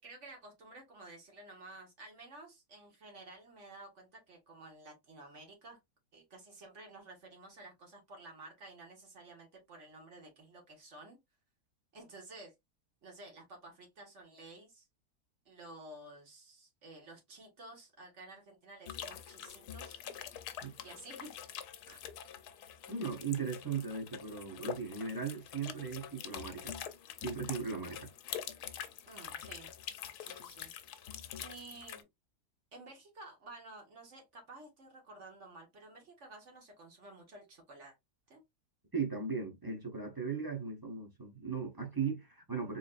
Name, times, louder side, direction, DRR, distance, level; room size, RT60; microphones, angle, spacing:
voice 1, 0.0-5.8 6.1-11.2 11.9-12.5 13.0-14.9 15.4-20.2 20.8-22.1 29.1-29.7 30.2-30.7 31.4-32.1 32.7-37.9 38.3-38.4, right 2 dB, 50° right, 1.7 m, -52 dB
sound 1, 18.9-32.0, left 9 dB, 80° left, 1.2 m, -45 dB
voice 2, 22.9-26.8 27.2-28.1 38.9-42.8, right 5 dB, 20° right, 0.7 m, -37 dB
3.9 x 3.3 x 2.4 m
omnidirectional pair, 1.7 m